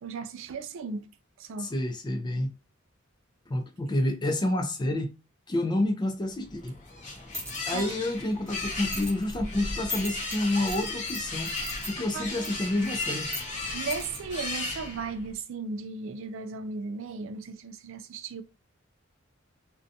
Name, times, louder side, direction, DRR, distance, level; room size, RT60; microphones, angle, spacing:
voice 1, 0.0-1.1 1.4-1.7 7.7-7.9 11.5-11.8 12.1-12.6 13.5-18.4, right 4 dB, 65° right, 0.4 m, -36 dB
voice 2, 1.6-2.5 3.5-5.1 5.5-6.7 7.7-11.5 11.9-13.3, left 1 dB, 20° left, 0.4 m, -29 dB
sound 1, 6.4-15.3, left 3 dB, 35° left, 0.8 m, -35 dB
sound 2, 7.0-15.1, left 1 dB, 15° right, 0.9 m, -43 dB
2.5 x 2.2 x 2.6 m
head